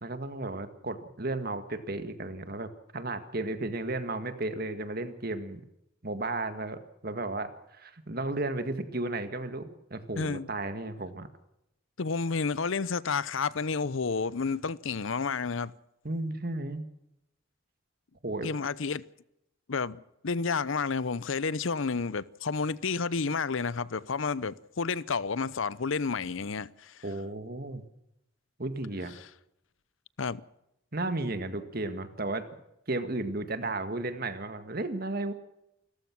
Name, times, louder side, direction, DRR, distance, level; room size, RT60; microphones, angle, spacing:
voice 1, 0.0-5.6 6.0-11.3 16.0-16.8 18.2-18.5 27.0-27.8 28.6-29.1 30.9-32.4 32.9-35.3, right 2 dB, 45° right, 1.9 m, -34 dB
voice 2, 10.2-10.5 12.0-15.7 18.4-19.0 19.7-27.0 30.2-30.4, left 4 dB, 75° left, 0.7 m, -30 dB
29.0 x 14.5 x 6.2 m
head